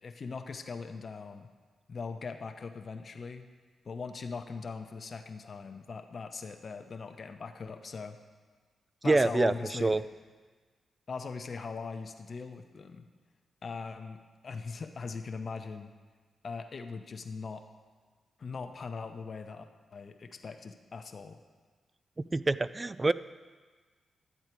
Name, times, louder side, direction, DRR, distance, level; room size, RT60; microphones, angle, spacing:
voice 1, 0.0-1.5 1.9-3.5 3.8-8.2 9.0-9.9 11.1-13.1 13.6-15.9 16.4-17.6 18.4-19.7 19.9-21.4, left 4 dB, 55° left, 6 dB, 0.7 m, -40 dB
voice 2, 9.0-9.5 9.8-10.0 22.3-23.1, right 2 dB, 30° right, 16 dB, 0.3 m, -25 dB
11.0 x 7.9 x 4.5 m, 1.4 s
cardioid pair, 60°, 0 cm